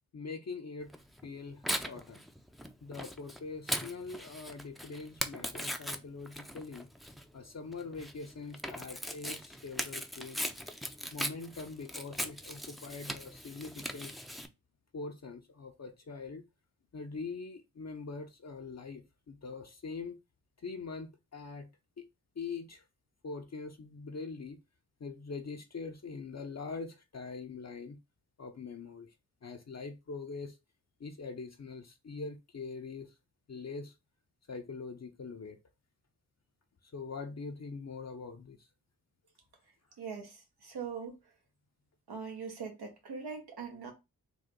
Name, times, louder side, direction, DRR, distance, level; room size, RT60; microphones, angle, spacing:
voice 1, 0.1-0.9 1.2-2.2 2.8-6.9 7.3-10.4 11.1-14.1 14.9-16.5 16.9-20.2 20.6-21.7 22.0-22.1 22.4-22.8 23.2-24.6 25.0-28.0 28.4-29.1 29.4-30.6 31.0-33.1 33.5-33.9 34.5-35.6 36.8-38.7, left 4 dB, 45° left, 0.7 m, -43 dB
Tearing, 0.9-14.5, equal, ahead, 0.6 m, -40 dB
voice 2, 40.0-41.2 42.1-43.9, right 6 dB, 85° right, 1.4 m, -41 dB
3.9 x 2.5 x 3.7 m
cardioid pair, 50°, 38 cm